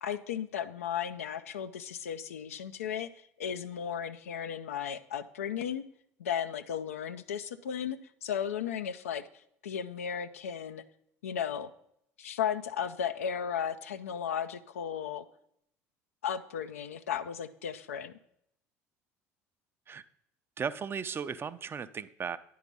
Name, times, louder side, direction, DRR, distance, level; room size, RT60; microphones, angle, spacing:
voice 1, 0.0-3.1 3.4-5.8 6.2-9.2 9.6-10.8 11.2-11.7 12.2-15.2 16.2-18.1, left 8 dB, 90° left, 10 dB, 0.4 m, -35 dB
voice 2, 20.6-22.4, right 6 dB, 30° right, 13 dB, 0.5 m, -36 dB
9.9 x 4.7 x 5.3 m, 0.74 s
hypercardioid pair, 70°, 7 cm